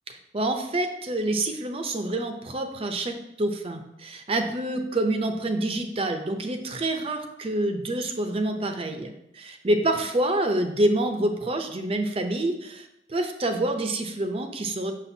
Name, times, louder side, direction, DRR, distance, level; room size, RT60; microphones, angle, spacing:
voice 1, 0.1-14.9, right 1 dB, 30° right, 6 dB, 0.5 m, -27 dB
6.3 x 5.8 x 2.7 m, 0.83 s
head